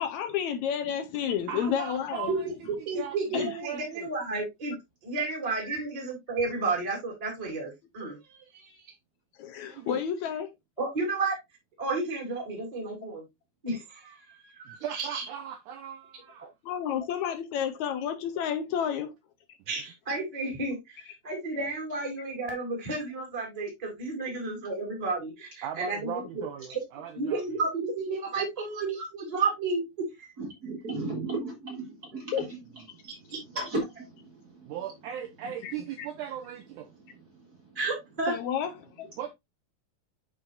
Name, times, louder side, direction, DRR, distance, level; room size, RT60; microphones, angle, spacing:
voice 1, 0.0-2.3 3.3-3.6 9.4-10.5 16.7-19.1 32.3-32.5 35.6-36.1 38.3-38.7 39.0-39.1, left 8 dB, 75° left, 1.7 m, -31 dB
voice 2, 1.5-4.1 9.7-10.0 14.7-16.5 25.6-27.4 34.7-36.9 39.2-39.3, right 9 dB, 75° right, 1.8 m, -38 dB
voice 3, 2.8-4.7 5.0-8.9 10.8-11.4 11.8-13.2 13.6-15.2 19.7-26.1 26.7-26.8 27.1-29.8 30.2-30.3 37.7-38.3, right 3 dB, 10° right, 2.4 m, -32 dB
voice 4, 30.4-32.3 33.5-34.3, right 2 dB, 40° right, 1.5 m, -34 dB
9.7 x 4.9 x 2.6 m
omnidirectional pair, 4.1 m